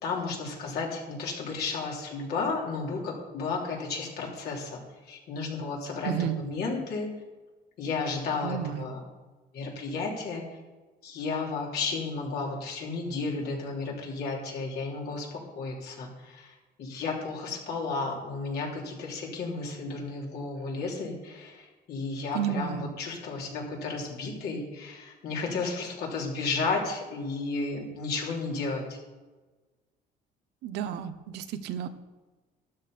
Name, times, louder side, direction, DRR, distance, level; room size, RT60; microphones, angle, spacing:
voice 1, 0.0-4.8 5.1-7.1 7.8-9.0 9.5-10.4 11.0-29.0, left 4 dB, 70° left, -2 dB, 3.7 m, -33 dB
voice 2, 6.0-6.4 8.4-8.9 22.3-22.9 30.6-31.9, right 9 dB, 90° right, 10 dB, 1.0 m, -31 dB
12.5 x 11.0 x 5.2 m, 1.3 s
cardioid pair, 110°, 17 cm